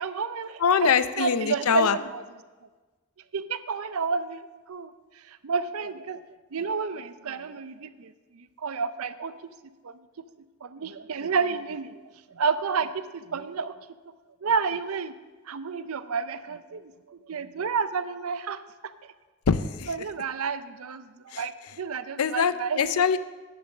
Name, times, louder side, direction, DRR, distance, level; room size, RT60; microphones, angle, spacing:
voice 1, 0.0-2.2 3.3-6.2 6.5-9.3 9.8-10.0 10.6-12.0 12.3-13.8 14.4-15.1 15.5-19.1 19.9-23.0, right 5 dB, 75° right, 13 dB, 0.6 m, -31 dB
voice 2, 0.6-2.0 19.5-19.9 21.3-21.4 22.2-23.2, left 6 dB, 80° left, 14 dB, 0.5 m, -23 dB
10.0 x 7.0 x 6.6 m, 1.3 s
head